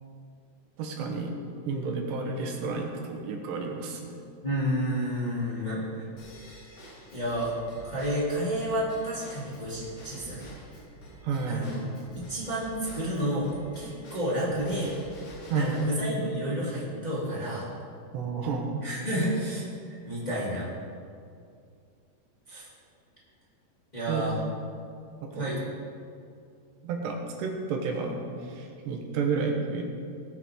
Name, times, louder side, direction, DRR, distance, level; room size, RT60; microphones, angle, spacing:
voice 1, 0.8-1.3 1.7-4.2 11.2-11.8 15.5-15.8 18.1-18.8 24.1-24.2 25.2-25.5 26.8-29.8, right 4 dB, 80° right, 1 dB, 3.4 m, -31 dB
voice 2, 4.4-6.1 7.1-7.5 7.8-10.5 11.5-11.8 12.1-13.5 13.7-14.9 15.5-17.7 18.8-20.7 22.5-22.7 23.9-24.3 25.3-25.6, equal, 10° left, -8 dB, 2.3 m, -30 dB
Drum kit / Drum / Bell, 6.2-15.9, right 1 dB, 45° left, 2.9 m, -48 dB
19.5 x 9.3 x 3.8 m, 2.4 s
omnidirectional pair, 4.9 m